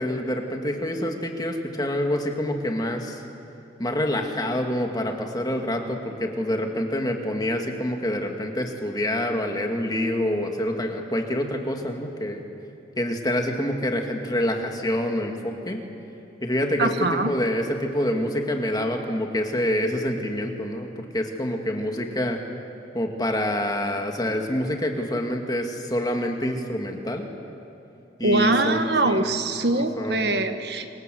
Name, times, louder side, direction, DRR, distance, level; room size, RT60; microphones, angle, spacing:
voice 1, 0.0-3.2 3.8-12.4 13.0-15.8 16.4-16.9 17.3-22.4 22.9-27.3 28.2-29.4 30.0-30.4, left 1 dB, 20° left, 3 dB, 2.3 m, -26 dB
voice 2, 16.8-17.3 28.2-30.9, right 2 dB, 60° right, 8 dB, 1.3 m, -23 dB
27.5 x 27.0 x 7.9 m, 2.8 s
head